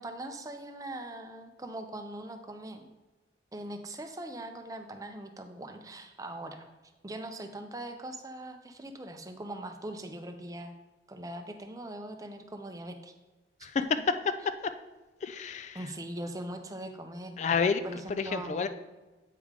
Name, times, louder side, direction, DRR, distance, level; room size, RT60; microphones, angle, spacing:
voice 1, 0.0-2.9 3.5-6.7 7.0-10.7 11.1-13.1 15.7-17.4 17.8-18.7, right 1 dB, 20° right, 6 dB, 0.6 m, -41 dB
voice 2, 13.6-14.0 14.2-14.7 15.2-15.9 17.4-18.7, left 5 dB, 40° left, 10 dB, 0.3 m, -30 dB
8.4 x 4.9 x 3.7 m, 1.1 s
head